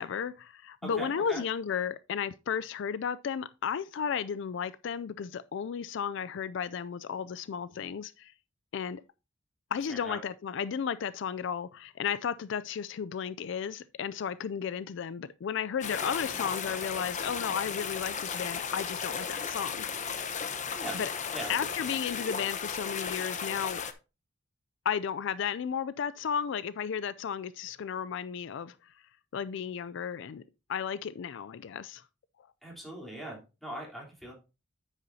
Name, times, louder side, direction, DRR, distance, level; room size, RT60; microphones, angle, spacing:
voice 1, 0.0-8.3 8.7-9.0 9.7-20.0 20.9-21.1 21.5-23.9 24.8-28.9 29.3-30.4 30.7-32.0 32.4-32.5, left 7 dB, 65° left, 0.4 m, -34 dB
voice 2, 0.8-1.4 9.9-10.2 20.7-21.0 21.3-21.5 32.6-34.3, right 1 dB, ahead, 3.6 m, -40 dB
sound 1, 15.8-23.9, left 6 dB, 40° left, 0.9 m, -35 dB
9.4 x 8.1 x 2.7 m
head